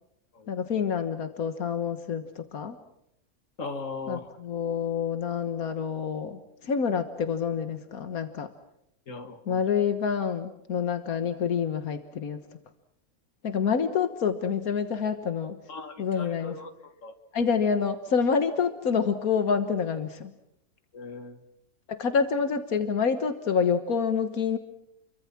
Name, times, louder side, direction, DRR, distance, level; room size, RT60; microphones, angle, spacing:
voice 1, 0.5-2.8 4.1-8.5 9.5-12.4 13.4-15.6 16.0-16.5 17.3-20.3 21.9-24.6, left 6 dB, 85° left, 9 dB, 1.8 m, -27 dB
voice 2, 3.6-4.4 9.1-9.6 15.7-17.1 20.9-21.4, left 3 dB, 60° left, 8 dB, 2.4 m, -39 dB
29.5 x 24.0 x 6.1 m, 0.80 s
omnidirectional pair, 1.5 m